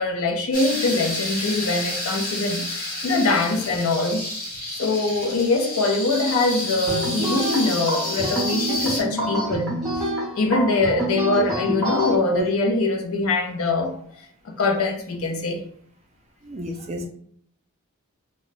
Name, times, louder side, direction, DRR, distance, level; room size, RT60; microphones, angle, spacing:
voice 1, 0.0-4.3 4.7-9.7 10.0-13.9 14.4-15.6, left 3 dB, 75° left, 0.5 m, -23 dB
sound 1, 0.5-9.0, left 1 dB, 40° left, 1.0 m, -30 dB
sound 2, 6.9-12.2, right 1 dB, ahead, 0.8 m, -27 dB
voice 2, 16.4-17.1, right 1 dB, 30° right, 0.4 m, -30 dB
2.2 x 2.2 x 3.9 m
head